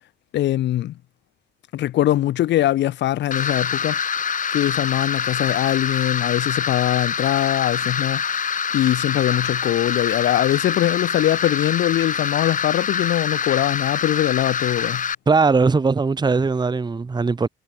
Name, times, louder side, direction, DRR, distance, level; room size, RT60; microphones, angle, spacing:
voice 1, 0.3-1.0 1.7-4.0 4.5-8.2 8.7-15.0, left 13 dB, 65° left, 0.5 m, -22 dB
sound 1, 3.3-15.1, left 7 dB, 40° left, 1.3 m, -25 dB
voice 2, 15.3-17.5, right 4 dB, 20° right, 1.0 m, -19 dB
cardioid pair, 90°, 20 cm